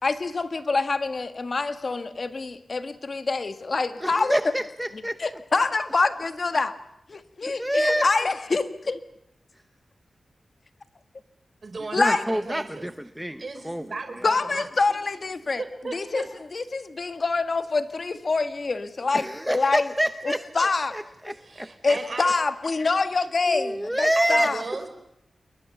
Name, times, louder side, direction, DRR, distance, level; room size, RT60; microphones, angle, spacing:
voice 1, 0.0-4.3 5.2-6.7 7.1-9.0 11.9-12.2 14.2-15.6 15.9-16.2 16.5-19.3 19.5-19.8 20.5-21.0 21.8-24.6, left 3 dB, 50° left, 10 dB, 1.5 m, -25 dB
voice 2, 4.0-5.4 7.4-8.3 9.5-9.6 11.9-14.3 19.1-21.8 23.5-24.5, equal, 5° right, 10 dB, 0.9 m, -27 dB
voice 3, 11.6-12.9 13.4-14.7 15.6-16.3 21.4-22.3 24.2-24.9, right 3 dB, 50° right, 7 dB, 4.4 m, -35 dB
28.5 x 21.5 x 7.0 m, 0.80 s
wide cardioid pair, 90°, 0 cm